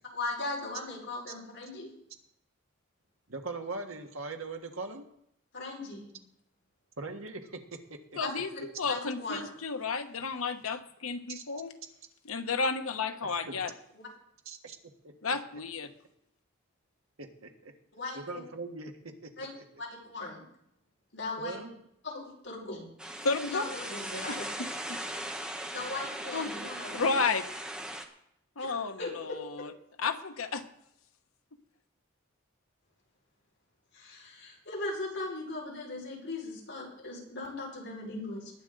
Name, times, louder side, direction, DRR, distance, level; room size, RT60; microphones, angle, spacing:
voice 1, 0.1-1.9 5.5-6.2 8.2-8.6 8.9-9.4 17.9-18.2 19.4-19.5 19.8-20.4 21.1-21.6 22.0-22.9 23.5-24.4 25.7-27.2 28.6-29.4 33.9-38.5, left 2 dB, 60° left, -3 dB, 5.2 m, -38 dB
voice 2, 3.3-5.0 7.0-7.6 11.3-11.4 13.2-13.5 14.4-14.8 15.0-15.1 17.2-17.7 18.1-19.6 21.4-21.7, right 3 dB, 80° right, 4 dB, 1.6 m, -40 dB
voice 3, 8.2-11.7 12.2-13.7 15.2-15.9 23.2-23.8 24.3-25.0 26.3-26.5 26.9-27.5 28.6-29.7 30.0-30.6, left 4 dB, 90° left, 7 dB, 1.1 m, -32 dB
sound 1, 23.0-28.0, right 1 dB, 5° right, 1.0 m, -39 dB
20.5 x 9.2 x 3.9 m, 0.75 s
head